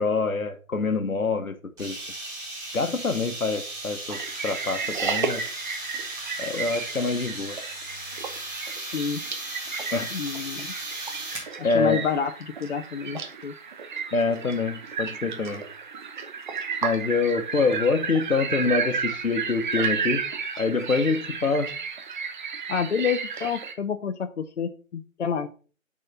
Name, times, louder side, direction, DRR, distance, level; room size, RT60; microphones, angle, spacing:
voice 1, 0.0-2.0 2.7-5.4 6.4-7.6 9.9-10.1 11.6-12.0 14.1-15.6 16.8-20.2 20.6-21.7, left 4 dB, 85° left, 8 dB, 1.1 m, -26 dB
sound 1, 1.8-11.5, right 2 dB, 10° right, 1.9 m, -36 dB
sound 2, 4.1-23.7, right 6 dB, 35° right, 0.8 m, -33 dB
voice 2, 10.1-10.8 11.6-13.5 22.7-25.5, left 6 dB, 55° left, 8 dB, 0.6 m, -28 dB
6.4 x 4.1 x 5.6 m, 0.39 s
figure-of-eight pair, 140°, 41 cm